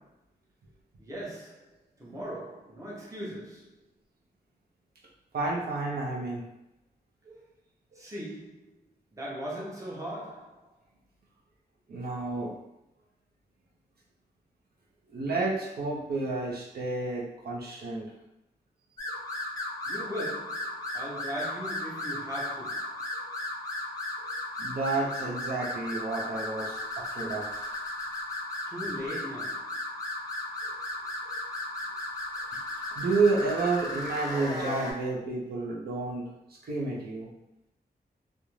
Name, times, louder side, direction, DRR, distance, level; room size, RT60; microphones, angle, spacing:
voice 1, 1.0-3.7 7.9-8.7 9.1-10.7 19.9-23.0 28.7-29.8, equal, 20° right, 0.7 m, -39 dB
voice 2, 5.3-6.4 7.2-7.4 11.9-12.5 15.1-18.1 19.1-19.2 23.2-23.3 24.2-24.3 24.6-27.7 30.6-30.8 31.2-31.3 33.0-36.3 36.6-37.3, right 3 dB, 70° right, 0.6 m, -30 dB
sound 1, 19.0-34.9, left 1 dB, 20° left, 0.6 m, -35 dB
2.4 x 2.1 x 3.0 m
wide cardioid pair, 130°, 17 cm